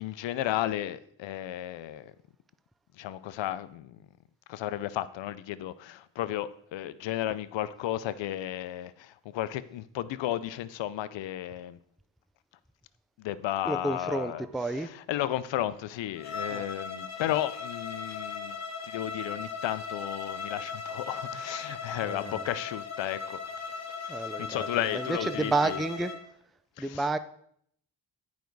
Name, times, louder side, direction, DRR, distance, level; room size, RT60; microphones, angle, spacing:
voice 1, 0.0-2.1 2.9-4.0 4.5-11.8 13.2-14.5 14.7-18.6 18.8-25.8 26.8-27.1, left 13 dB, 85° left, 0.6 m, -34 dB
voice 2, 13.7-14.9 16.5-16.6 22.0-22.5 24.1-26.2 26.8-27.2, right 2 dB, ahead, 0.3 m, -31 dB
Bowed string instrument, 16.2-26.2, left 5 dB, 40° left, 1.2 m, -38 dB
9.3 x 5.2 x 4.6 m
cardioid pair, 70°, 43 cm